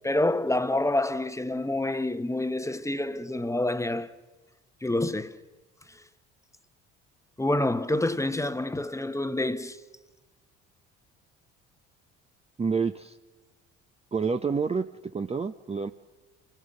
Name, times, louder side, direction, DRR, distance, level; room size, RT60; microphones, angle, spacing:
voice 1, 0.0-4.1 4.8-5.4 5.9-6.0 7.4-9.8, left 1 dB, 10° left, 1.0 m, -27 dB
voice 2, 12.6-13.2 14.1-14.8 15.1-15.9, right 5 dB, 20° right, 0.6 m, -28 dB
28.0 x 14.5 x 6.5 m
hypercardioid pair, 60°, 34 cm